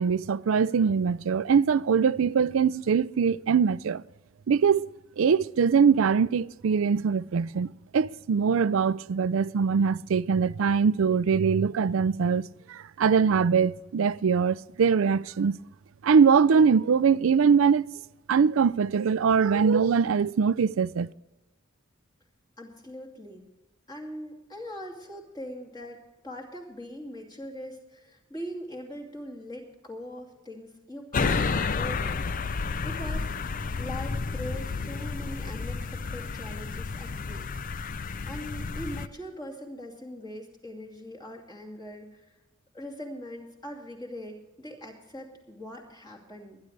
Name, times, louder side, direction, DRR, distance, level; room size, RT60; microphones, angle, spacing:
voice 1, 0.0-4.0 4.5-4.9 5.2-12.4 12.7-15.6 16.0-17.9 18.3-21.1, right 6 dB, 80° right, 0.4 m, -22 dB
voice 2, 22.6-23.5 23.9-32.2 32.8-33.3 33.8-37.5 38.3-42.3 42.7-46.6, equal, 20° left, 2.5 m, -41 dB
sound 1, 31.1-39.1, left 4 dB, 40° left, 0.5 m, -31 dB
22.5 x 10.5 x 3.3 m
head